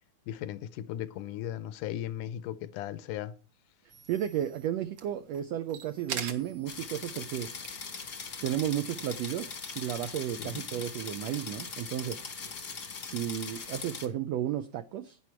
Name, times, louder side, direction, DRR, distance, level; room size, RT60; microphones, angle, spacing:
voice 1, 0.3-3.3 10.4-10.6, left 11 dB, 85° left, 2.2 m, -37 dB
sound 1, 3.9-9.0, right 7 dB, 55° right, 2.1 m, -44 dB
voice 2, 4.1-7.5 8.4-12.2 13.0-15.2, right 11 dB, 75° right, 1.6 m, -33 dB
sound 2, 6.7-14.1, left 5 dB, 40° left, 1.1 m, -41 dB
11.5 x 10.0 x 4.4 m
omnidirectional pair, 3.6 m